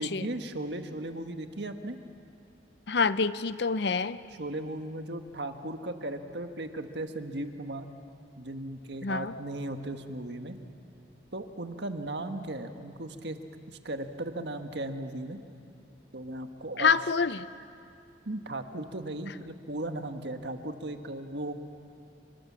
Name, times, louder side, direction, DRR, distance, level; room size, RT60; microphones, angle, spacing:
voice 1, 0.0-2.0 4.4-7.9 8.4-10.6 11.3-13.4 13.7-15.4 16.1-16.9 18.2-21.5, right 1 dB, 70° right, 7 dB, 1.5 m, -36 dB
voice 2, 2.9-4.2 9.0-9.3 16.8-17.5, left 5 dB, 65° left, 14 dB, 0.7 m, -26 dB
27.0 x 24.5 x 7.5 m, 2.5 s
head